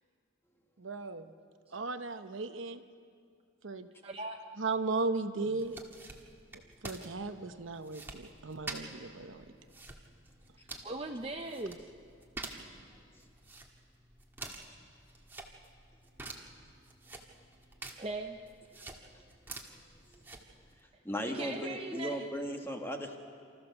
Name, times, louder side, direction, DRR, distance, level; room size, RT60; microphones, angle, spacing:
voice 1, 0.8-1.3 1.7-2.8 3.6-3.9 4.6-5.8 6.8-9.4, right 3 dB, 65° right, 9 dB, 0.9 m, -36 dB
voice 2, 4.0-4.4 10.6-11.9 18.0-18.4 21.2-22.3, right 2 dB, 30° right, 3 dB, 0.7 m, -39 dB
sound 1, 5.6-20.8, right 2 dB, 10° right, 1.6 m, -49 dB
voice 3, 21.0-23.2, equal, 10° left, 3 dB, 1.5 m, -37 dB
29.0 x 14.0 x 7.0 m, 2.2 s
head